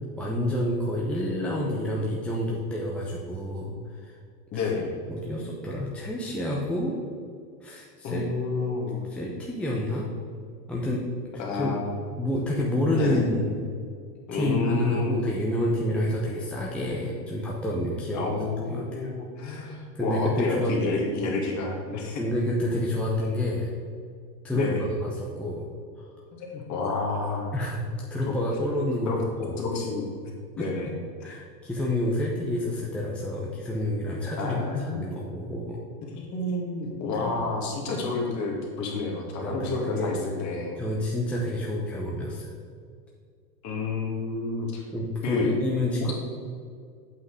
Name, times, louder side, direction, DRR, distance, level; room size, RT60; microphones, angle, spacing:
voice 1, 0.2-4.2 5.1-7.0 7.6-8.3 9.1-10.1 10.7-11.0 11.6-11.8 12.2-13.6 14.3-18.3 18.7-19.1 20.0-20.8 22.2-23.7 24.4-25.7 26.0-26.1 27.5-27.8 28.1-29.1 29.4-29.6 30.6-30.9 31.2-34.6 34.9-35.8 37.1-37.5 37.9-38.0 39.4-40.2 40.8-42.5 44.9-46.1, left 1 dB, 5° left, -4 dB, 0.7 m, -28 dB
voice 2, 4.5-4.9 8.0-9.0 11.4-11.9 12.9-13.2 14.3-15.2 18.1-22.2 24.5-24.8 26.3-27.5 29.1-29.2 29.6-30.9 31.2-31.3 34.4-35.0 36.0-40.8 43.6-44.8 45.2-45.5 46.0-46.1, left 3 dB, 35° left, -1 dB, 2.1 m, -30 dB
8.2 x 5.6 x 4.8 m, 2.2 s
supercardioid pair, 125°, 49 cm